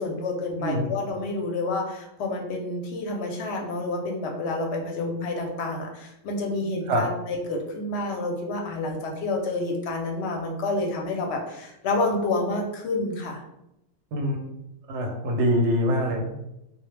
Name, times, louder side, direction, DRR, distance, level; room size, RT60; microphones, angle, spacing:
voice 1, 0.0-13.4, left 2 dB, 65° left, 1 dB, 0.7 m, -29 dB
voice 2, 14.1-14.5 14.9-16.3, equal, 65° right, 2 dB, 0.8 m, -24 dB
2.1 x 2.1 x 3.1 m, 0.85 s
omnidirectional pair, 1.4 m